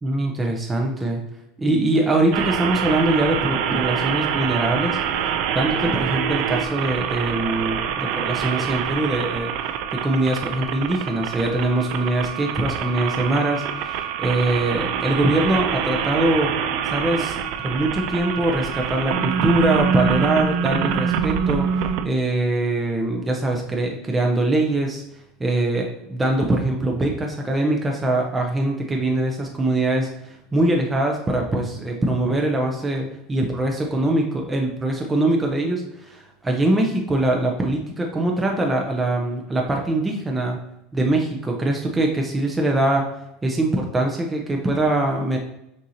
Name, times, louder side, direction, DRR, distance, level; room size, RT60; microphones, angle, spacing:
voice 1, 0.0-1.2 1.6-5.0 5.5-9.5 9.9-16.5 16.8-17.4 17.6-21.7 22.0-25.0 25.4-40.6 40.9-43.1 43.4-45.4, right 2 dB, 15° right, 1 dB, 0.7 m, -22 dB
sound 1, 2.3-22.1, right 7 dB, 65° right, 0.4 m, -25 dB
6.3 x 2.8 x 2.8 m, 0.82 s
supercardioid pair, 115°, 0 cm